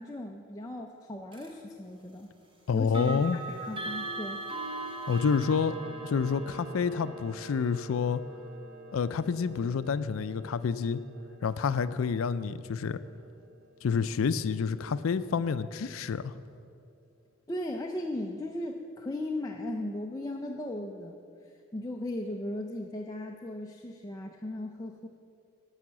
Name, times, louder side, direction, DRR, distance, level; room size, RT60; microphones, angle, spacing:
voice 1, 0.0-2.3 2.7-4.4 17.5-21.2 21.4-25.1, left 1 dB, 15° left, 1 dB, 0.5 m, -37 dB
sound 1, 1.3-1.5 2.8-13.7, right 2 dB, 25° right, 1.1 m, -42 dB
voice 2, 2.7-3.4 5.1-5.8 6.0-8.2 8.9-11.0 11.4-13.0 13.8-16.3, left 6 dB, 85° left, 13 dB, 0.4 m, -28 dB
13.0 x 5.7 x 7.4 m, 2.4 s
head